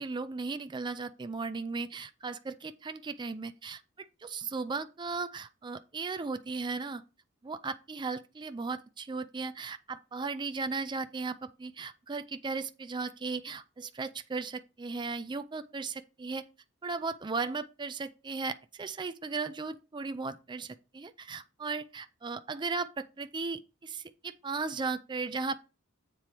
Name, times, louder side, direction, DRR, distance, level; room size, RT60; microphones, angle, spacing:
voice 1, 0.0-7.0 7.4-16.4 16.8-25.6, right 4 dB, 20° right, 0.4 m, -36 dB
7.6 x 4.3 x 4.8 m
head